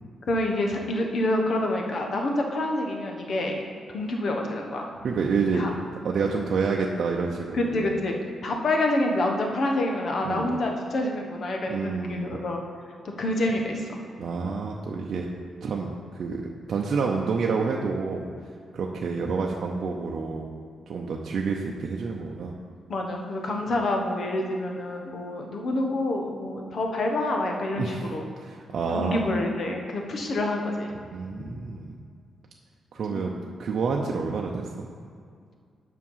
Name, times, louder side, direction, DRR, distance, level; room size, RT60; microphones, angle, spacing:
voice 1, 0.3-3.6 3.9-4.9 5.5-5.7 7.5-8.2 8.4-12.6 13.2-14.0 22.9-28.2 28.9-30.9 33.1-33.3 34.0-34.1, left 1 dB, 55° left, 2 dB, 1.2 m, -27 dB
voice 2, 5.0-5.6 6.0-7.9 10.2-10.5 11.7-12.4 14.2-15.3 15.6-16.4 16.7-18.3 18.7-20.5 20.9-22.5 27.7-28.1 28.4-29.2 31.1-32.0 32.9-33.3 33.6-34.9, right 4 dB, 60° right, -1 dB, 0.7 m, -28 dB
7.4 x 6.0 x 5.6 m, 2.2 s
cardioid pair, 100°, 0 cm